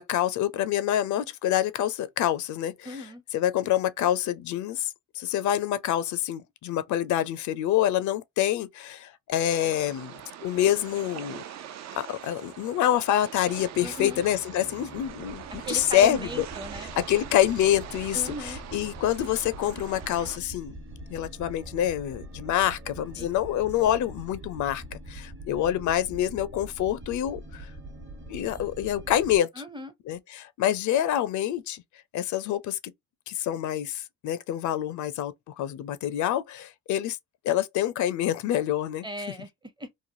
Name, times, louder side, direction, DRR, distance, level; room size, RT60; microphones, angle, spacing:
voice 1, 0.0-3.0 3.3-10.1 10.4-11.4 12.0-16.5 17.0-20.7 21.1-27.7 28.3-29.5 30.1-31.8 32.1-32.8 33.3-37.2 37.4-39.0, left 11 dB, 75° left, 0.5 m, -26 dB
voice 2, 2.8-3.2 13.8-14.2 15.7-16.9 18.1-18.6 23.2-23.3 23.8-24.0 29.5-29.9 39.0-39.5 39.8-39.9, right 1 dB, 15° right, 0.6 m, -37 dB
sound 1, 9.5-20.4, right 10 dB, 60° right, 0.5 m, -43 dB
sound 2, 13.7-29.4, right 1 dB, 40° right, 1.1 m, -43 dB
3.1 x 2.2 x 2.6 m
cardioid pair, 90°, 30 cm